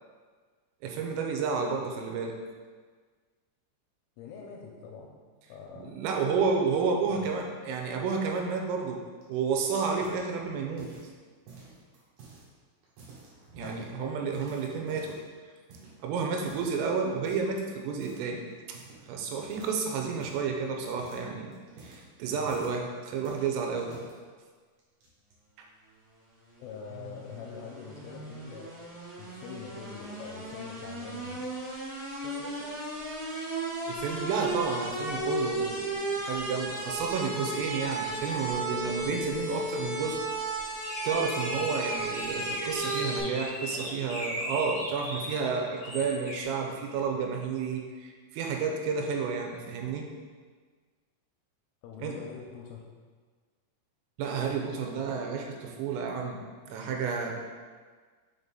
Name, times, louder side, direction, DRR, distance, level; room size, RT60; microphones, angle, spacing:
voice 1, 0.8-2.4 5.8-10.9 13.5-15.2 16.0-23.9 25.6-25.7 33.9-40.2 41.0-50.1 52.0-52.2 54.2-56.4 56.7-57.3, right 5 dB, 85° right, 2 dB, 3.3 m, -31 dB
voice 2, 4.2-5.2 5.5-6.0 7.0-7.5 13.6-14.3 14.9-15.0 26.6-31.5 32.2-32.8 43.7-44.1 51.8-52.9, left 6 dB, 85° left, 0 dB, 3.0 m, -44 dB
sound 1, 9.2-11.2 11.5-12.5 12.8-13.9 14.3-15.3 15.7-16.0 16.4-16.8 17.2-17.6 18.0-18.2 18.5-19.2 19.4-22.8 23.2-24.1 24.8-25.3, right 3 dB, 65° right, 2.3 m, -50 dB
sound 2, 26.5-43.2, right 2 dB, 50° right, 2.1 m, -35 dB
sound 3, 40.8-45.4 45.8-46.4, equal, 65° left, 2.2 m, -37 dB
6.3 x 5.4 x 3.8 m, 1.5 s
omnidirectional pair, 5.9 m